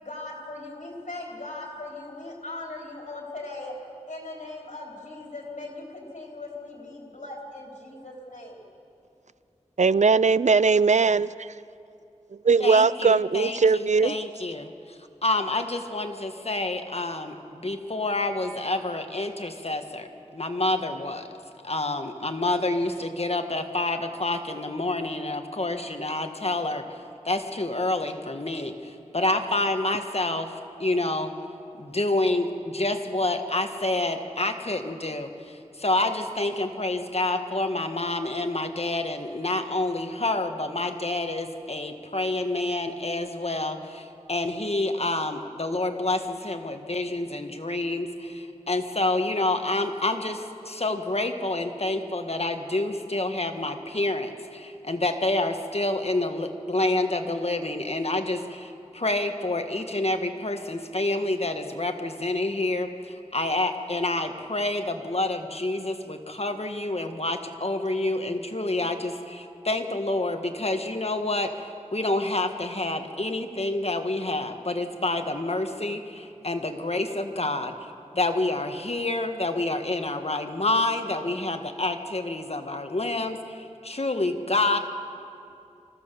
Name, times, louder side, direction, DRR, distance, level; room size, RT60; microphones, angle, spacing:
voice 1, 0.0-3.7 4.1-8.6, left 2 dB, 75° left, -2 dB, 3.8 m, -39 dB
voice 2, 9.8-11.5 12.5-14.2, right 4 dB, 70° right, 18 dB, 0.4 m, -20 dB
voice 3, 12.6-14.7 15.2-21.3 21.6-26.8 27.2-30.5 30.8-31.3 31.8-71.5 71.9-77.7 78.1-84.8, left 2 dB, 55° left, 6 dB, 1.5 m, -28 dB
25.0 x 15.5 x 6.8 m, 2.6 s
wide cardioid pair, 45°, 12 cm